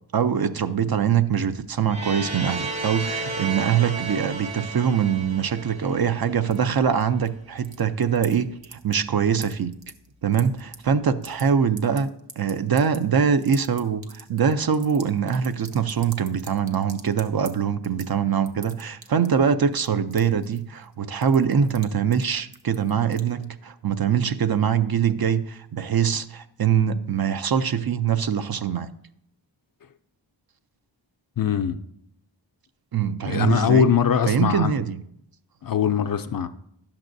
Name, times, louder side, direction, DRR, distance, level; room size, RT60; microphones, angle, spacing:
voice 1, 0.1-9.7 10.2-12.1 12.4-28.9 32.9-33.9 34.3-35.0, right 7 dB, 55° right, 10 dB, 0.5 m, -23 dB
sound 1, 1.9-6.7, right 3 dB, 85° right, 1.5 m, -33 dB
sound 2, 6.5-7.3 7.6-8.3 8.6-9.1 9.4-10.8 11.1-11.4 11.8-17.5 17.8-18.1 18.5-19.4 19.7-20.9 21.2-21.9 22.1-22.2 22.5-23.4, right 4 dB, 70° right, 0.9 m, -42 dB
voice 2, 31.4-31.8 33.3-34.7 35.6-36.5, left 8 dB, 50° left, 9 dB, 0.4 m, -21 dB
11.0 x 7.2 x 2.6 m, 0.73 s
wide cardioid pair, 55°, 46 cm